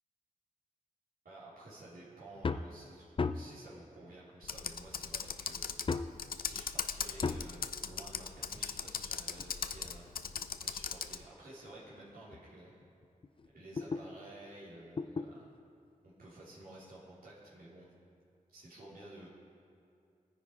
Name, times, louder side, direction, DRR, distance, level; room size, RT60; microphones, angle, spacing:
voice 1, 1.2-5.8 6.4-10.1 10.6-12.7 13.5-15.5 16.0-17.9 18.5-19.3, right 1 dB, 90° right, -9 dB, 4.0 m, -52 dB
sound 1, 2.4-2.7 3.2-3.6 4.6-4.7 5.9-6.2 7.2-7.6 8.9-10.6 11.2-11.3 11.9-12.0 12.3-12.4 12.8-14.1 15.0-15.3 16.6-16.7, left 4 dB, 35° left, 0.4 m, -36 dB
Computer keyboard, 4.4-11.2, left 7 dB, 90° left, 0.5 m, -39 dB
20.0 x 10.0 x 4.8 m, 2.5 s
wide cardioid pair, 120°, 15 cm